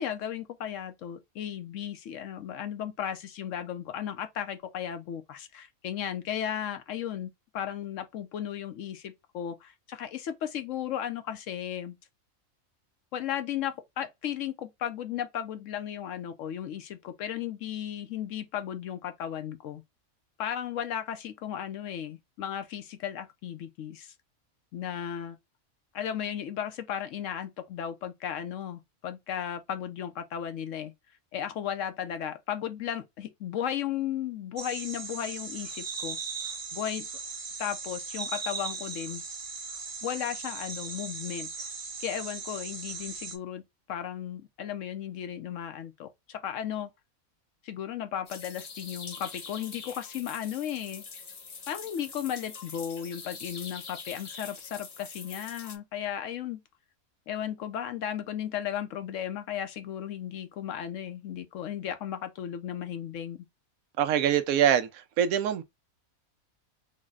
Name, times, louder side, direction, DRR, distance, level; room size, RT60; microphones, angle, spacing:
voice 1, 0.0-12.0 13.1-19.8 20.4-24.1 24.7-25.4 25.9-30.9 31.3-36.2 36.7-37.1 37.6-39.2 40.0-41.5 42.0-43.6 43.9-46.9 47.6-51.0 51.7-56.6 57.3-63.5, left 9 dB, 70° left, 0.9 m, -35 dB
sound 1, 34.6-43.4, right 5 dB, 60° right, 0.3 m, -38 dB
sound 2, 48.3-55.8, left 5 dB, 50° left, 0.4 m, -44 dB
voice 2, 64.0-64.9 65.2-65.6, right 9 dB, 80° right, 1.0 m, -23 dB
3.9 x 2.1 x 3.6 m
omnidirectional pair, 1.5 m